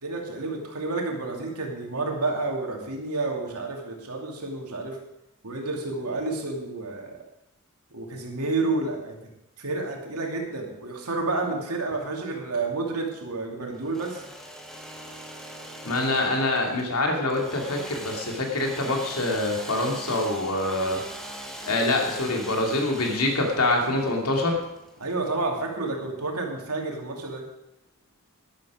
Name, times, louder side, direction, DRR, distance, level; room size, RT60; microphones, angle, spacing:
voice 1, 0.0-5.0 5.4-7.2 7.9-9.2 9.6-14.2 25.0-27.5, right 3 dB, 90° right, 1 dB, 2.8 m, -30 dB
Engine / Sawing, 13.7-25.4, equal, ahead, 1.4 m, -41 dB
voice 2, 15.8-21.0 21.7-24.6, left 2 dB, 80° left, 1 dB, 2.8 m, -25 dB
12.0 x 11.5 x 5.1 m, 0.86 s
head